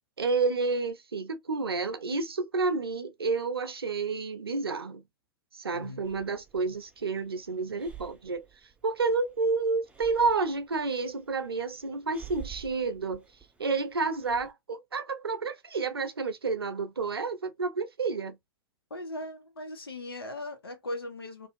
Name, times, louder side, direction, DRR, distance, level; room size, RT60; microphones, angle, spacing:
voice 1, 0.2-5.0 5.5-8.5 8.8-13.2 13.6-18.4, right 4 dB, 80° right, 0.6 m, -30 dB
voice 2, 5.7-6.0 18.9-21.5, left 1 dB, 80° left, 1.1 m, -38 dB
Breathing, 6.0-14.5, right 10 dB, 10° right, 0.5 m, -51 dB
2.6 x 2.4 x 2.5 m
figure-of-eight pair, 95°, 12 cm